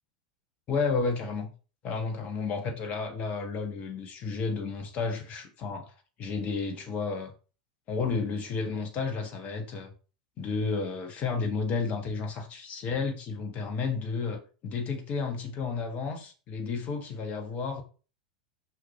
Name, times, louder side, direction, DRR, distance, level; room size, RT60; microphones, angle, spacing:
voice 1, 0.7-1.5 1.8-5.9 6.2-7.3 7.9-9.9 10.4-17.8, left 4 dB, 35° left, 1.5 m, -32 dB
6.2 x 5.9 x 3.4 m
figure-of-eight pair, 85°, 4 cm